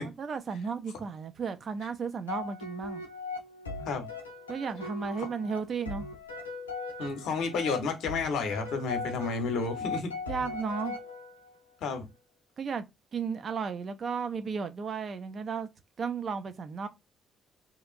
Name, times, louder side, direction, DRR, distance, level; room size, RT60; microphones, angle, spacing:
voice 1, 0.0-3.0 4.5-6.1 10.3-11.0 12.6-12.8 13.1-15.7 16.0-16.9, right 5 dB, 45° right, 0.4 m, -34 dB
sound 1, 2.3-11.6, left 3 dB, 85° left, 0.4 m, -39 dB
voice 2, 7.0-10.1 11.8-12.1, left 4 dB, 60° left, 0.8 m, -31 dB
2.9 x 2.4 x 2.4 m
figure-of-eight pair, 40°, 0 cm